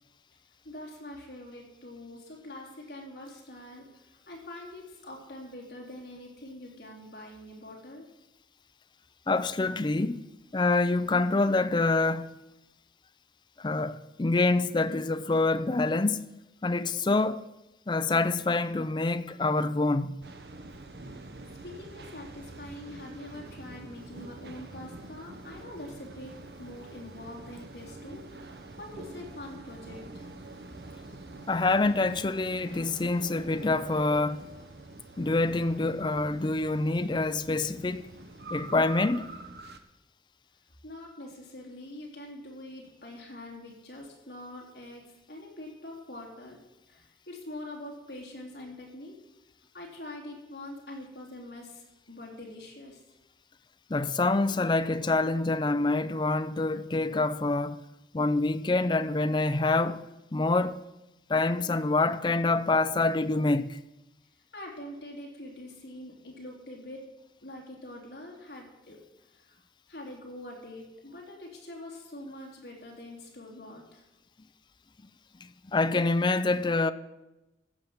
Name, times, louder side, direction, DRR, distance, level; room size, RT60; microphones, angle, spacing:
voice 1, 0.6-8.1 21.1-21.3 21.6-28.2 28.8-30.3 40.8-46.6 46.9-49.2 49.7-53.0 64.5-67.0 67.4-69.0 69.3-69.6 69.9-74.0, left 1 dB, 65° left, 3.4 m, -44 dB
voice 2, 9.3-10.2 10.5-12.4 13.6-16.3 16.6-17.4 17.9-20.2 31.5-34.4 35.2-38.1 38.5-39.3 53.9-57.8 58.1-60.9 61.3-63.8 75.7-76.9, left 3 dB, 25° left, 0.4 m, -26 dB
sound 1, 20.2-39.8, right 2 dB, 65° right, 0.9 m, -45 dB
14.5 x 5.7 x 7.8 m
head